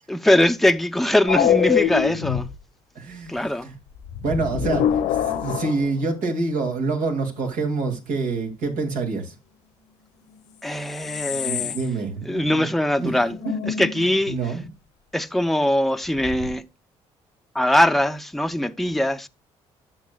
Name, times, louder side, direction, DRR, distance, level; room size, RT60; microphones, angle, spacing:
voice 1, 0.1-2.5 3.3-3.7 10.6-11.7 12.3-13.4 13.7-14.4 15.1-16.6 17.5-19.3, left 1 dB, ahead, 0.6 m, -21 dB
sound 1, 1.3-2.5 4.1-6.2 10.4-10.5 10.7-12.0 12.3-12.4 12.7-12.8 13.1-14.1 16.2-16.5, left 9 dB, 80° left, 1.0 m, -25 dB
voice 2, 2.9-3.3 3.6-3.7 4.2-9.3 11.3-12.7 13.0-13.1 13.5-13.6 14.3-14.7, right 3 dB, 80° right, 2.4 m, -26 dB
11.5 x 6.6 x 2.3 m
supercardioid pair, 70°, 13 cm